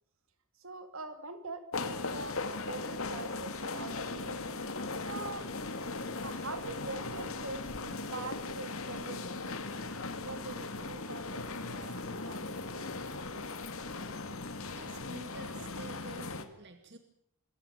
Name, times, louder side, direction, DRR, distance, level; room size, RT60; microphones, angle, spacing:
voice 1, 0.6-4.5 5.0-5.5 6.2-9.7 10.2-12.9, right 3 dB, 70° right, 9 dB, 2.5 m, -44 dB
sound 1, 1.7-16.4, left 3 dB, 75° left, 2.1 m, -38 dB
voice 2, 14.7-17.0, right 1 dB, 50° right, 7 dB, 2.1 m, -48 dB
26.0 x 15.0 x 9.1 m, 0.71 s
head